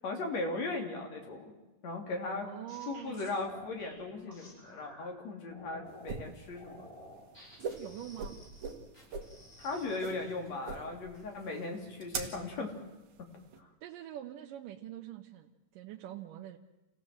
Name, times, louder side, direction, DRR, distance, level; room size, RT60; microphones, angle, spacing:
voice 1, 0.0-1.5 1.8-2.5 2.9-6.9 9.6-12.7 13.6-13.7, left 3 dB, 55° left, 2 dB, 4.0 m, -37 dB
sound 1, 2.2-5.0 5.5-6.2 6.5-10.8 11.1-11.8 12.2-12.5, equal, 15° left, 7.8 m, -54 dB
voice 2, 2.4-3.4 7.8-8.4 13.8-16.6, right 12 dB, 90° right, 2 dB, 2.6 m, -45 dB
sound 2, 5.9-13.6, right 5 dB, 65° right, 2.9 m, -43 dB
28.5 x 16.0 x 7.7 m, 1.1 s
omnidirectional pair, 3.7 m